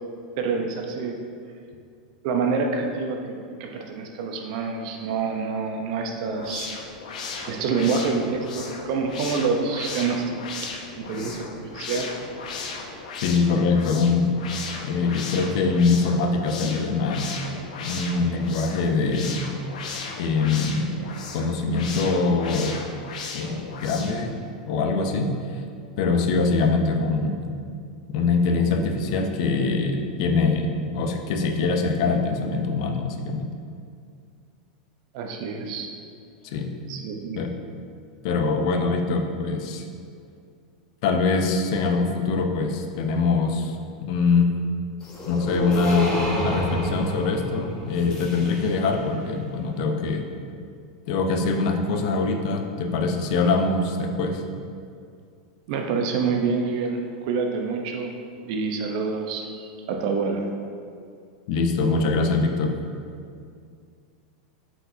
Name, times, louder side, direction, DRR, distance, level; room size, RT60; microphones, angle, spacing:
voice 1, 0.4-1.1 2.2-6.7 7.5-12.2 35.1-35.9 36.9-37.5 55.7-58.1 58.4-60.5, right 4 dB, 60° right, 3 dB, 0.7 m, -27 dB
sound 1, 6.2-24.3, left 4 dB, 90° left, 0.8 m, -36 dB
voice 2, 13.2-14.3 14.8-17.3 17.8-19.4 20.2-20.9 21.3-22.8 23.3-24.3 24.7-25.3 26.0-27.4 28.1-33.5 36.4-36.7 37.4-37.5 38.2-39.8 41.0-43.8 44.0-44.5 45.3-50.2 51.1-54.4 61.5-62.7, left 4 dB, 60° left, 4 dB, 0.6 m, -23 dB
sound 2, 45.0-49.0, equal, 20° left, 1.3 m, -29 dB
7.8 x 4.5 x 2.7 m, 2.3 s
supercardioid pair, 140°, 4 cm